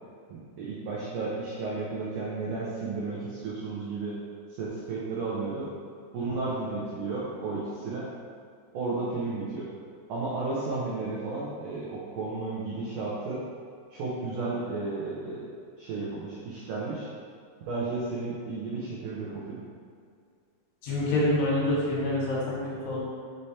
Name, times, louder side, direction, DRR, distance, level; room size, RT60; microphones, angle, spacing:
voice 1, 0.3-4.1 4.6-5.7 6.1-8.1 8.7-9.7 10.1-13.4 13.9-15.4 15.8-17.1 17.7-19.6, right 3 dB, 90° right, -7 dB, 1.8 m, -33 dB
voice 2, 20.8-22.6 22.8-23.0, left 1 dB, 70° left, -6 dB, 3.2 m, -26 dB
6.9 x 3.3 x 4.3 m, 2.3 s
omnidirectional pair, 4.9 m